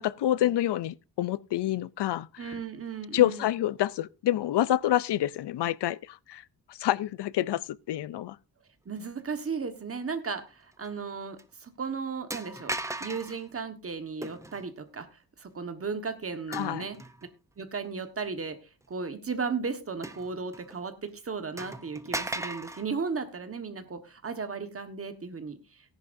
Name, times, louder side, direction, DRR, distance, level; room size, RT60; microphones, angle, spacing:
voice 1, 0.0-2.3 3.1-6.4 6.8-7.6 7.9-8.4 16.5-16.9, left 13 dB, 80° left, 0.5 m, -27 dB
voice 2, 2.4-3.5 8.8-12.7 13.0-15.1 15.4-17.0 17.6-18.6 18.9-25.6, right 5 dB, 35° right, 1.4 m, -35 dB
sound 1, 10.8-11.1 11.4-11.5 12.3-13.4 14.2-14.7 16.5-17.3 17.8-17.9 20.0-20.8 21.1-21.2 21.6-22.9, right 2 dB, 5° right, 0.6 m, -37 dB
17.5 x 10.5 x 2.6 m
wide cardioid pair, 180°, 40 cm